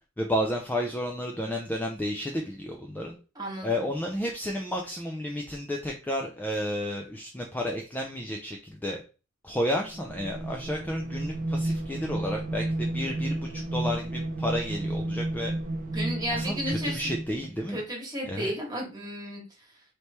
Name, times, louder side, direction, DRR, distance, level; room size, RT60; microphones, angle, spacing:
voice 1, 0.2-3.2 3.6-9.0 9.4-15.5 16.4-17.8 18.2-18.5, equal, 10° left, 1 dB, 0.4 m, -32 dB
voice 2, 3.3-3.9 15.9-17.0 17.7-19.8, equal, 20° right, -2 dB, 1.6 m, -34 dB
sound 1, 9.9-17.6, right 1 dB, 40° right, 0.6 m, -32 dB
3.3 x 3.0 x 4.2 m, 0.33 s
head